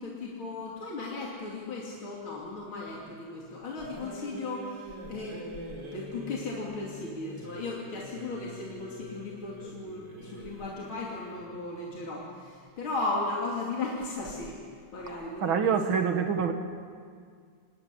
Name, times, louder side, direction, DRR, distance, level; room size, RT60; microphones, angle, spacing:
voice 1, 0.0-14.6 14.9-15.8, left 3 dB, 75° left, -3 dB, 3.6 m, -36 dB
sound 1, 3.8-11.5, right 1 dB, 55° right, 4.5 m, -45 dB
voice 2, 15.4-16.5, right 6 dB, 75° right, 6 dB, 2.3 m, -25 dB
27.0 x 19.0 x 10.0 m, 2.1 s
omnidirectional pair, 2.2 m